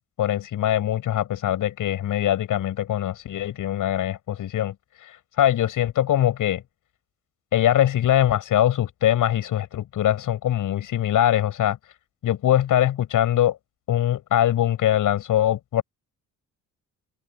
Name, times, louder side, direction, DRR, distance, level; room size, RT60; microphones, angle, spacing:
voice 1, 0.0-4.7 5.0-6.6 7.5-11.8 12.2-13.6 13.9-15.8, left 11 dB, 75° left, 7.2 m, -22 dB
cardioid pair, 100°, 32 cm